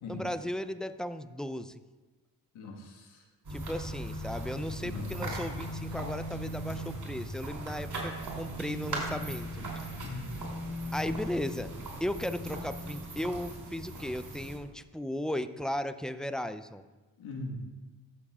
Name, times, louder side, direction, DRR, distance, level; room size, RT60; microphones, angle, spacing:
voice 1, 0.1-1.8 3.5-9.5 9.8-9.9 10.9-11.7 12.0-16.8, left 1 dB, ahead, 11 dB, 0.4 m, -36 dB
voice 2, 2.5-3.2 4.8-5.3 10.0-10.4 17.2-17.6, left 2 dB, 75° left, 0 dB, 1.7 m, -40 dB
sound 1, 3.4-14.6, right 1 dB, 50° right, 3.1 m, -38 dB
14.0 x 7.0 x 2.4 m, 1.2 s
hypercardioid pair, 40°, 48 cm